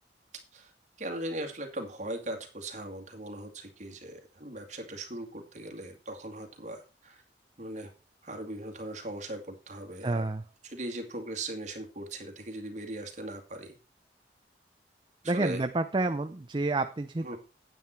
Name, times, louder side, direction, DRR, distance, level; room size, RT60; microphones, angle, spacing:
voice 1, 1.0-7.2 7.6-7.9 8.2-10.3 10.6-13.7 15.2-15.6 17.2-17.4, right 1 dB, 40° right, 4 dB, 2.1 m, -39 dB
voice 2, 10.0-10.4 15.3-17.4, right 2 dB, 25° right, 8 dB, 0.5 m, -29 dB
9.4 x 9.2 x 4.4 m, 0.34 s
head